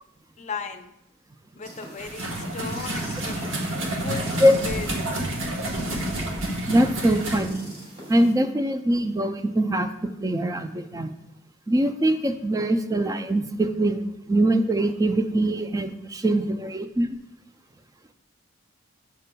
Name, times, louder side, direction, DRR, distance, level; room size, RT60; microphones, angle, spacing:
voice 1, 0.4-0.9 1.6-5.1, left 5 dB, 35° left, 6 dB, 0.5 m, -36 dB
sound 1, 1.6-8.3, equal, 35° right, 2.3 m, -42 dB
sound 2, 2.0-7.4, right 1 dB, 70° right, 1.1 m, -29 dB
voice 2, 6.7-7.7 8.1-11.1 11.7-17.2, right 1 dB, 15° right, 7 dB, 0.3 m, -23 dB
6.6 x 6.5 x 2.2 m, 0.81 s
head